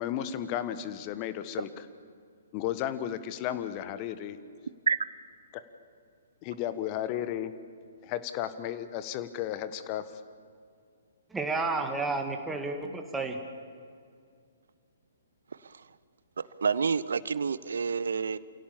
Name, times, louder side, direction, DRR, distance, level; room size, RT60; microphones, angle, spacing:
voice 1, 0.0-1.9 2.5-4.4 5.5-5.6 6.4-7.5 8.0-10.2, left 11 dB, 30° left, 12 dB, 1.3 m, -34 dB
voice 2, 11.3-13.4, right 3 dB, 5° right, 3 dB, 2.0 m, -31 dB
voice 3, 16.6-18.4, right 5 dB, 65° right, 18 dB, 0.7 m, -28 dB
29.0 x 17.0 x 7.2 m, 2.2 s
figure-of-eight pair, 125°, 0 cm